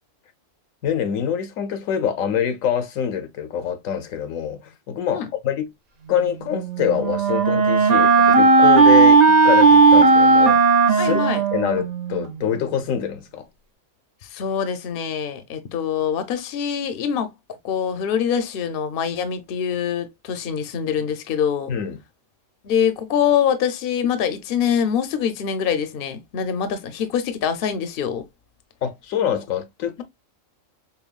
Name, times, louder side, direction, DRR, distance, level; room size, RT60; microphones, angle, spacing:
voice 1, 0.8-5.7 6.1-10.6 10.9-11.3 11.5-13.5 21.7-22.0 28.8-30.0, left 8 dB, 85° left, 1.1 m, -25 dB
Wind instrument woodwind instrument, 6.5-12.3, right 4 dB, 40° right, 0.7 m, -15 dB
voice 2, 11.0-11.4 14.3-17.3 17.6-21.7 22.6-28.3, left 8 dB, 55° left, 0.8 m, -24 dB
5.6 x 2.3 x 2.2 m
omnidirectional pair, 1.3 m